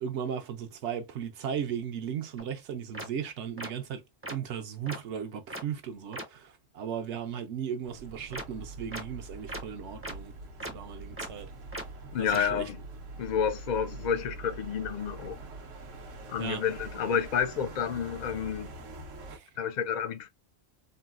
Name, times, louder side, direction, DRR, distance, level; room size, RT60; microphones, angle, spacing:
voice 1, 0.0-4.0 4.3-10.3 10.7-11.5 12.2-12.7 16.4-16.6 19.3-19.5, right 8 dB, 70° right, 0.8 m, -36 dB
sound 1, 2.4-2.5 2.9-3.1 3.6-3.7 4.2-4.3 4.9-5.0 5.5-5.6 6.1-6.2 8.3-8.4 8.9-9.0 9.5-9.6 10.0-10.1 10.6-10.7 11.2-11.3 11.7-11.8 12.3-12.4, right 1 dB, 20° right, 0.4 m, -37 dB
sound 2, 7.8-19.4, right 2 dB, 85° right, 1.1 m, -44 dB
voice 2, 12.1-12.8 13.2-15.4 16.3-18.7 19.6-20.3, left 7 dB, 70° left, 0.4 m, -30 dB
3.8 x 2.0 x 2.3 m
omnidirectional pair, 1.3 m